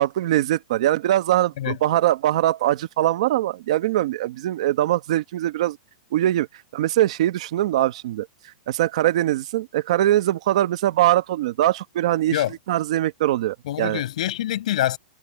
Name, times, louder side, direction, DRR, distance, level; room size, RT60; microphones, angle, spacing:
voice 1, 0.0-5.8 6.1-6.5 6.7-8.3 8.7-12.4 12.7-14.0, right 13 dB, 45° right, 1.2 m, -22 dB
voice 2, 13.7-15.0, left 13 dB, 55° left, 7.7 m, -25 dB
supercardioid pair, 175°, 5 cm